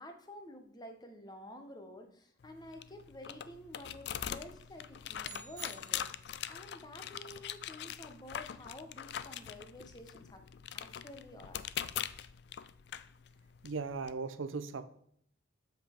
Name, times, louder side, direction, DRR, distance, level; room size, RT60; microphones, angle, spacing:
voice 1, 0.0-6.1 6.5-10.4 10.7-11.6, left 1 dB, 20° left, 5 dB, 0.8 m, -50 dB
sound 1, 2.4-14.1, left 10 dB, 60° left, 0.3 m, -43 dB
sound 2, 5.2-6.6, right 6 dB, 20° right, 0.7 m, -51 dB
voice 2, 13.6-14.9, right 4 dB, 85° right, 12 dB, 0.6 m, -38 dB
7.3 x 5.2 x 4.4 m, 0.68 s
head